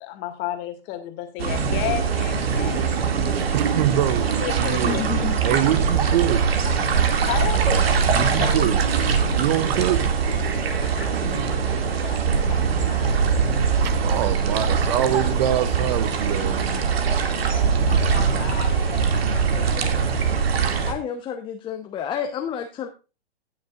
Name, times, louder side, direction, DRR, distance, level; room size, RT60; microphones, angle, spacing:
voice 1, 0.0-2.9 4.4-5.5 7.2-7.7 8.3-8.7 10.8-13.3 17.4-20.0, left 13 dB, 30° left, 2.1 m, -34 dB
sound 1, 1.4-20.9, right 6 dB, 65° right, 2.3 m, -22 dB
voice 2, 3.3-5.0 5.4-6.5 8.1-8.8 9.3-10.0 13.8-16.7, right 12 dB, 40° right, 0.9 m, -24 dB
voice 3, 4.8-5.4 20.8-22.9, left 8 dB, 15° left, 0.8 m, -30 dB
18.0 x 6.5 x 2.4 m
hypercardioid pair, 130°, 32 cm